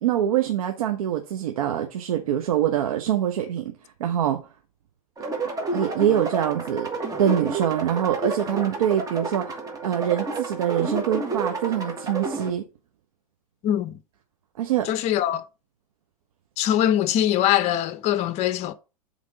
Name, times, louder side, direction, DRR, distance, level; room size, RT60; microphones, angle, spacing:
voice 1, 0.0-3.7 4.0-4.4 5.7-6.9 7.2-12.6 14.6-14.9, right 10 dB, 65° right, 1.0 m, -24 dB
sound 1, 5.2-12.5, right 3 dB, 20° right, 1.7 m, -30 dB
voice 2, 13.6-13.9 14.8-15.4 16.6-18.7, left 11 dB, 35° left, 0.7 m, -22 dB
7.6 x 3.5 x 5.0 m
hypercardioid pair, 105°, 19 cm